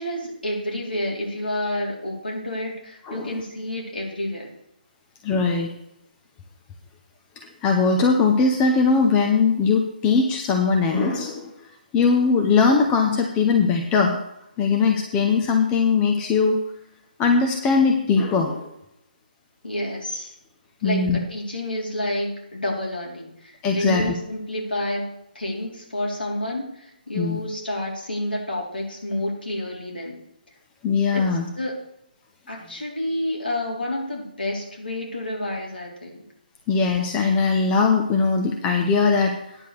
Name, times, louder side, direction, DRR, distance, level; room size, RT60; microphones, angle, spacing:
voice 1, 0.0-4.5 19.6-20.4 20.8-30.2 31.1-31.8 32.5-36.2, left 1 dB, 80° left, -1 dB, 3.8 m, -29 dB
voice 2, 5.2-5.7 7.6-11.5 11.9-14.2 14.6-16.6 17.2-18.7 20.8-21.2 23.6-24.1 27.1-27.4 30.8-31.5 36.7-39.6, left 4 dB, 15° left, 3 dB, 0.8 m, -20 dB
9.7 x 6.6 x 6.5 m, 0.82 s
figure-of-eight pair, 145°, 5 cm